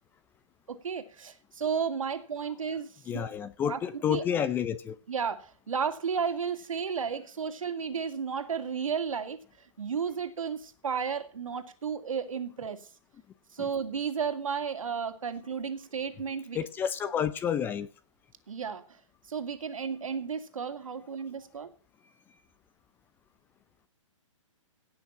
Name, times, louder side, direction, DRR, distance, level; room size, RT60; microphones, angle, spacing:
voice 1, 0.7-3.3 3.7-3.8 4.1-4.2 5.1-12.9 13.5-16.6 18.5-19.0 19.3-21.7, right 6 dB, 80° right, 2.4 m, -33 dB
voice 2, 3.1-5.0 13.6-13.7 16.5-17.9, left 8 dB, 10° left, 0.6 m, -30 dB
17.0 x 6.4 x 7.2 m
hypercardioid pair, 150°, 17 cm